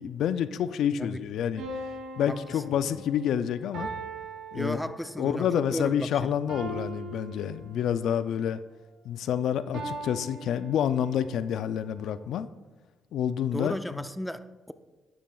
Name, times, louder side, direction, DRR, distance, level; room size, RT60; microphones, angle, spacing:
voice 1, 0.0-1.6 2.2-3.9 4.5-4.8 5.2-8.6 9.0-12.5 13.1-14.0, left 9 dB, 75° left, 13 dB, 0.4 m, -28 dB
sound 1, 1.6-5.3 6.5-8.1 9.7-11.3, right 2 dB, 70° right, 2.9 m, -40 dB
voice 2, 2.3-2.6 4.5-6.1 13.5-14.7, equal, 5° left, 10 dB, 0.5 m, -34 dB
12.0 x 10.5 x 2.3 m, 1.2 s
cardioid pair, 90°, 0 cm